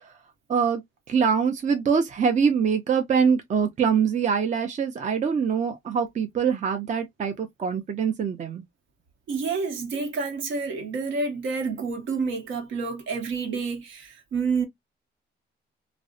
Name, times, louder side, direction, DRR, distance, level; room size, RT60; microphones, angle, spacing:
voice 1, 0.5-0.8 1.1-8.6, right 6 dB, 40° right, 0.5 m, -24 dB
voice 2, 9.3-14.7, right 4 dB, 75° right, 0.9 m, -29 dB
2.5 x 2.1 x 2.4 m
cardioid pair, 90°, 20 cm